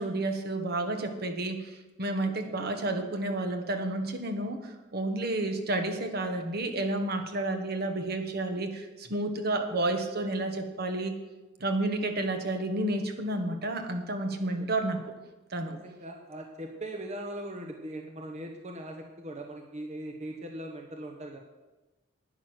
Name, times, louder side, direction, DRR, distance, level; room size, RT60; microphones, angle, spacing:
voice 1, 0.0-11.1 11.6-15.1 15.5-15.7, right 2 dB, 55° right, 6 dB, 1.3 m, -31 dB
voice 2, 2.2-2.6 14.4-14.7 15.7-21.4, right 1 dB, 35° right, 2 dB, 1.0 m, -40 dB
11.0 x 9.4 x 6.2 m, 1.1 s
head